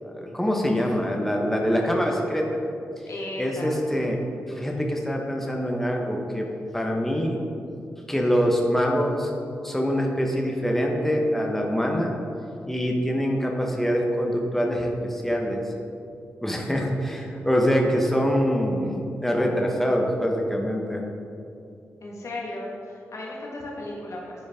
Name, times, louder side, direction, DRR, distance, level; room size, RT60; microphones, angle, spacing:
voice 1, 0.0-2.5 3.4-4.2 4.5-6.5 6.7-7.4 8.1-9.3 9.6-12.1 12.7-15.6 16.4-18.9 19.2-21.0, equal, 5° left, 0 dB, 1.2 m, -24 dB
voice 2, 3.1-4.2 22.0-24.3, left 1 dB, 65° left, -3 dB, 1.6 m, -36 dB
10.5 x 5.0 x 3.6 m, 2.6 s
supercardioid pair, 45°, 5 cm